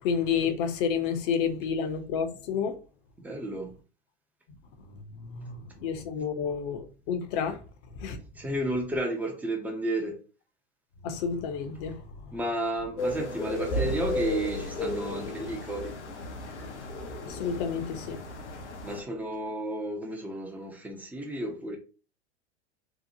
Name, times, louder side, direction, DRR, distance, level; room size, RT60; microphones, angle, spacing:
voice 1, 0.0-2.7 5.2-7.6 8.0-8.2 11.0-12.0 17.3-18.2, left 6 dB, 50° left, 0.6 m, -30 dB
voice 2, 3.2-3.7 8.4-10.2 12.3-15.9 18.8-21.8, right 1 dB, 5° right, 0.4 m, -32 dB
sound 1, 13.0-19.0, left 1 dB, 90° left, 0.6 m, -34 dB
2.8 x 2.1 x 2.6 m
hypercardioid pair, 100°, 34 cm